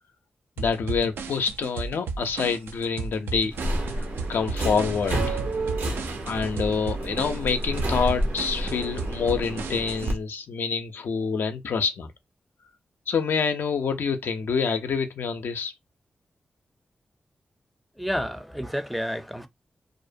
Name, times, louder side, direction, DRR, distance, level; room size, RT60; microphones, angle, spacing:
voice 1, 0.6-3.5 3.9-4.0 4.3-5.4 6.2-12.1 13.1-15.7, left 5 dB, 75° left, 0.4 m, -27 dB
sound 1, 0.6-10.2, right 4 dB, 90° right, 0.3 m, -34 dB
Subway metro underground, 3.5-10.1, right 1 dB, 75° right, 0.8 m, -30 dB
voice 2, 18.0-19.5, equal, ahead, 0.4 m, -30 dB
2.4 x 2.1 x 2.5 m
cardioid pair, 40°, 4 cm